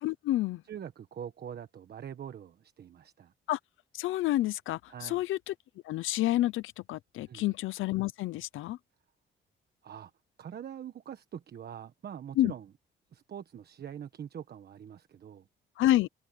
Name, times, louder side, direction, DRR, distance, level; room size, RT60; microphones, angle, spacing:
voice 1, 0.0-0.6 3.5-3.6 3.9-5.5 5.8-8.8 12.4-12.5 15.8-16.1, left 15 dB, 85° left, 0.8 m, -29 dB
voice 2, 0.7-3.3 4.9-5.2 7.2-7.5 9.8-10.1 10.4-12.7 13.1-15.5, right 9 dB, 55° right, 1.3 m, -44 dB
cardioid pair, 90°, 20 cm